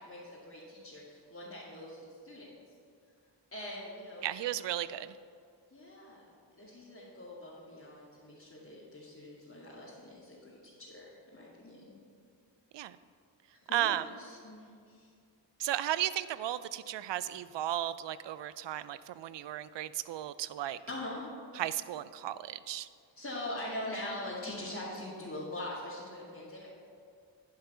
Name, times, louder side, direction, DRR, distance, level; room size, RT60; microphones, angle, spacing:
voice 1, 0.0-2.5 3.5-5.0 5.7-6.2 6.6-11.9 13.7-15.1 20.9-21.2 23.2-26.7, left 1 dB, 30° left, -9 dB, 2.4 m, -43 dB
voice 2, 4.2-5.1 12.7-13.0 13.7-14.0 15.6-20.8 21.5-22.9, right 12 dB, 70° right, 16 dB, 0.5 m, -34 dB
10.5 x 5.5 x 5.6 m, 2.3 s
cardioid pair, 45°, 45 cm